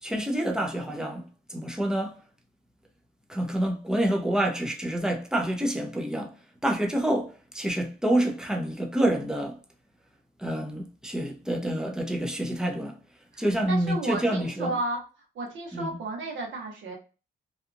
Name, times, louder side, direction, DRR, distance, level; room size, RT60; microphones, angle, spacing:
voice 1, 0.0-2.2 3.3-6.3 6.6-9.6 10.4-13.0 13.4-14.8 15.7-16.0, right 1 dB, 5° right, 0.6 m, -27 dB
voice 2, 13.3-15.0 15.3-16.9, right 2 dB, 80° right, 1.1 m, -33 dB
2.8 x 2.3 x 2.5 m
cardioid pair, 110°, 19 cm